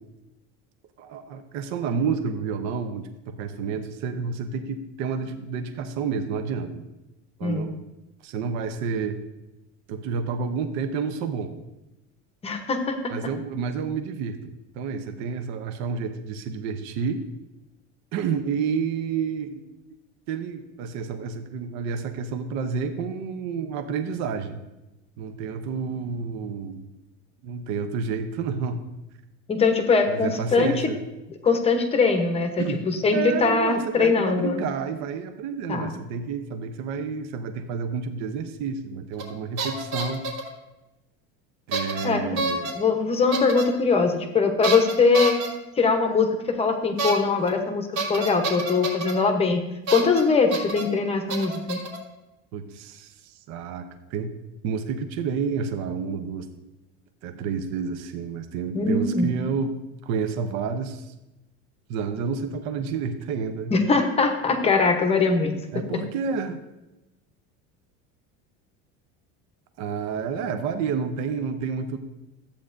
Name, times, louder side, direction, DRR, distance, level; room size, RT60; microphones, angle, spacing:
voice 1, 1.0-6.8 7.4-7.8 8.2-9.2 9.9-11.5 13.1-17.2 18.1-19.6 20.3-24.6 25.2-26.8 27.4-28.8 30.1-31.0 32.6-32.8 33.1-40.2 41.7-42.8 52.5-54.3 54.6-56.5 57.2-59.7 60.0-61.1 61.9-63.7 65.7-66.6 69.8-72.0, right 6 dB, 50° right, 7 dB, 0.8 m, -30 dB
voice 2, 12.4-13.1 29.5-30.9 31.4-34.6 35.7-36.0 42.0-42.3 42.7-45.4 45.8-49.6 49.9-51.8 58.7-59.3 63.7-65.5, left 4 dB, 15° left, 5 dB, 0.9 m, -22 dB
sound 1, 39.2-39.3 39.6-40.5 41.7-42.0 42.4-42.7 43.3-43.6 44.6-45.5 47.0-47.1 47.4-47.5 48.0-49.1 49.9-50.2 50.5-50.8 51.3-52.0, right 3 dB, 85° right, 2.8 m, -28 dB
13.5 x 8.5 x 2.6 m, 0.98 s
cardioid pair, 160°, 34 cm